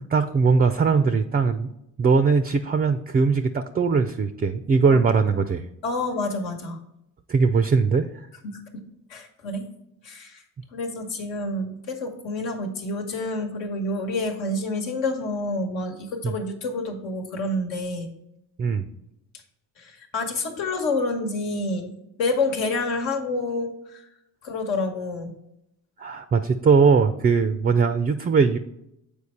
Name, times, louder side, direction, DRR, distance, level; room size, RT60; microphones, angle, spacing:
voice 1, 0.1-1.7 2.0-5.6 7.3-8.1 18.6-18.9 26.0-28.6, right 5 dB, 20° right, 10 dB, 0.4 m, -20 dB
voice 2, 5.8-6.8 8.4-8.6 9.1-9.7 10.0-10.4 10.7-18.1 19.8-24.0 24.4-25.3, left 2 dB, 75° left, 3 dB, 1.2 m, -28 dB
6.9 x 4.5 x 4.2 m, 0.81 s
hypercardioid pair, 50°, 46 cm